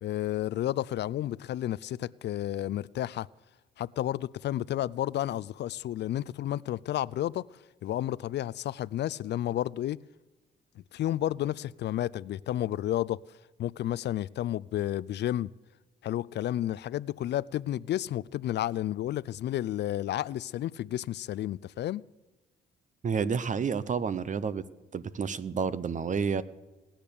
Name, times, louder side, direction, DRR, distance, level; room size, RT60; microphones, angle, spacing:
voice 1, 0.0-3.3 3.8-7.5 7.8-10.0 10.8-13.2 13.6-15.5 16.0-22.0, left 13 dB, 60° left, 0.4 m, -31 dB
voice 2, 23.0-24.7 24.9-26.4, right 6 dB, 40° right, 0.8 m, -30 dB
18.0 x 10.0 x 7.0 m
cardioid pair, 90°, 20 cm